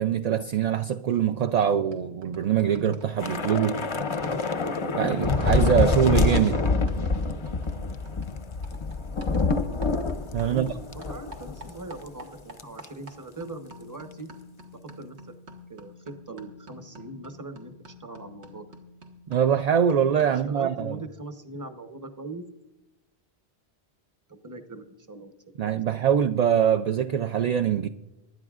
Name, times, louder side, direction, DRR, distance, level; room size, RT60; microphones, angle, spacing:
voice 1, 0.0-3.8 5.0-6.6 10.3-10.7 19.3-21.0 25.6-27.9, right 9 dB, 55° right, 0.4 m, -23 dB
sound 1, 1.1-1.3 1.6-10.8 11.0-20.5, equal, 90° right, 1.8 m, -47 dB
Thunder / Rain, 3.2-11.8 12.1-12.2 12.6-12.9, left 3 dB, 35° left, 0.6 m, -26 dB
voice 2, 10.4-14.3 15.0-15.3 15.7-18.8 20.2-22.4 24.3-25.3 25.6-25.8, right 2 dB, 20° right, 0.9 m, -41 dB
24.5 x 11.0 x 2.4 m
omnidirectional pair, 1.1 m